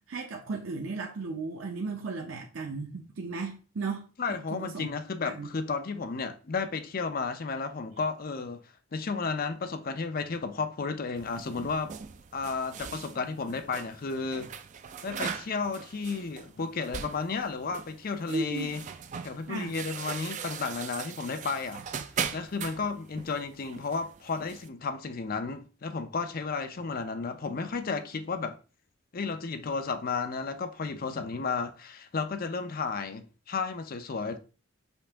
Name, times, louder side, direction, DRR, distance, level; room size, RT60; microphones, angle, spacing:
voice 1, 0.0-4.1 4.5-4.9 5.2-5.5 18.3-18.7 19.5-19.7, right 3 dB, 80° right, 0.7 m, -35 dB
voice 2, 4.2-8.6 8.9-11.9 12.3-14.5 15.0-18.8 19.2-21.8 22.3-28.6 29.1-34.4, left 4 dB, 45° left, 0.5 m, -33 dB
sound 1, 11.1-24.7, right 7 dB, 35° right, 0.3 m, -40 dB
5.4 x 2.7 x 3.4 m
head